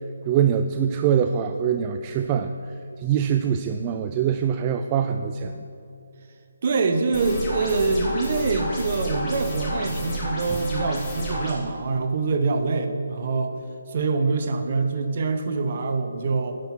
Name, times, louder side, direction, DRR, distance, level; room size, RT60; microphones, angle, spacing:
voice 1, 0.3-2.5 3.0-5.7, right 8 dB, 25° right, 7 dB, 0.3 m, -23 dB
voice 2, 6.6-13.5 13.9-16.5, right 3 dB, 45° right, 6 dB, 1.0 m, -25 dB
sound 1, 7.1-11.5, equal, 25° left, 2.5 m, -30 dB
10.0 x 5.9 x 6.1 m, 2.7 s
hypercardioid pair, 155°, 0 cm